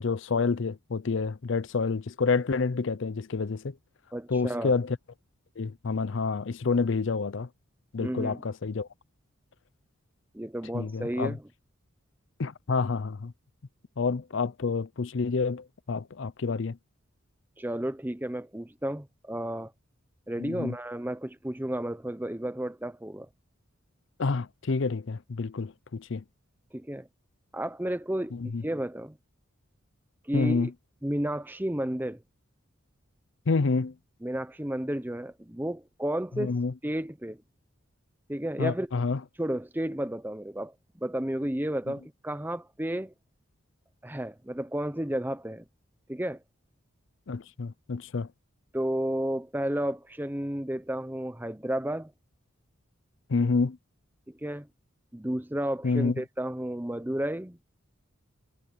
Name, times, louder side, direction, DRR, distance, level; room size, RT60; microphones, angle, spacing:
voice 1, 0.0-3.7 4.3-5.0 5.6-7.5 7.9-8.9 10.7-11.4 12.4-13.3 14.0-16.8 20.4-20.8 24.2-26.2 28.3-28.6 30.3-30.7 33.5-33.9 36.3-36.7 38.6-39.2 47.3-48.3 53.3-53.8 55.8-56.1, left 4 dB, 65° left, 0.5 m, -28 dB
voice 2, 4.1-4.7 8.0-8.4 10.3-11.4 17.6-19.7 20.3-23.3 26.7-27.1 27.5-29.1 30.3-30.7 31.0-32.2 34.2-36.6 36.8-37.4 38.3-38.9 39.4-43.1 44.0-45.6 46.1-46.4 48.7-52.1 54.3-54.7 55.1-57.6, right 1 dB, 10° right, 0.7 m, -32 dB
head